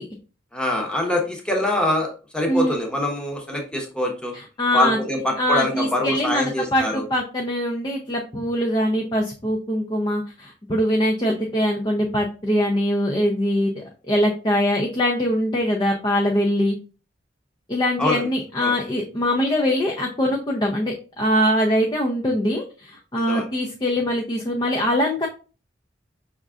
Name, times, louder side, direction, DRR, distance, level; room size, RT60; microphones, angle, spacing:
voice 1, 0.5-4.3 4.7-7.1 18.0-18.3 18.6-18.7 23.3-23.5, left 1 dB, 5° left, 1 dB, 0.9 m, -24 dB
voice 2, 2.5-2.8 4.6-5.0 5.4-16.7 17.7-25.3, equal, 25° left, 0 dB, 0.6 m, -22 dB
5.3 x 3.6 x 2.4 m, 0.35 s
head